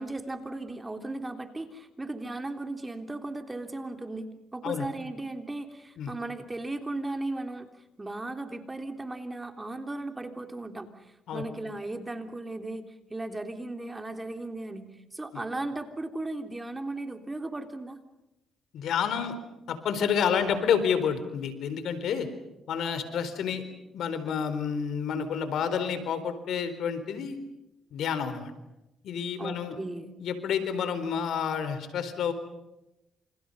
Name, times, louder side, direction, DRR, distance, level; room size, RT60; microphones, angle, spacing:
voice 1, 0.0-7.7 8.0-12.8 13.1-18.0 29.4-30.1, right 2 dB, 20° right, 6 dB, 3.4 m, -36 dB
voice 2, 18.7-19.3 19.7-22.3 22.7-23.6 23.9-27.4 27.9-28.5 29.0-29.8 30.2-32.3, left 7 dB, 75° left, 11 dB, 4.2 m, -29 dB
29.5 x 28.5 x 5.6 m, 0.91 s
cardioid pair, 90°, 0 cm